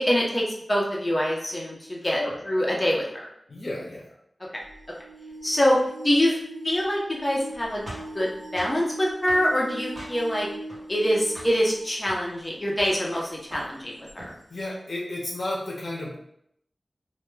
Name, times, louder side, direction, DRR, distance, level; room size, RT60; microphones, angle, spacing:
voice 1, 0.0-2.2 2.5-3.3 5.4-6.4 6.6-7.8 8.1-10.5 10.9-14.3, equal, 30° left, -3 dB, 0.7 m, -25 dB
voice 2, 2.0-2.4 3.5-4.2 14.5-16.2, left 1 dB, 80° left, -3 dB, 0.5 m, -32 dB
sound 1, 4.6-12.3 13.0-13.1 14.1-14.2, right 1 dB, 70° right, 1.1 m, -41 dB
sound 2, 7.9-8.8 9.3-9.5 10.0-10.4 10.7-11.1 11.4-11.6 12.0-12.2 12.7-13.8 14.1-14.4, equal, 50° right, 1.0 m, -41 dB
2.1 x 2.1 x 3.1 m, 0.74 s
wide cardioid pair, 60°, 0 cm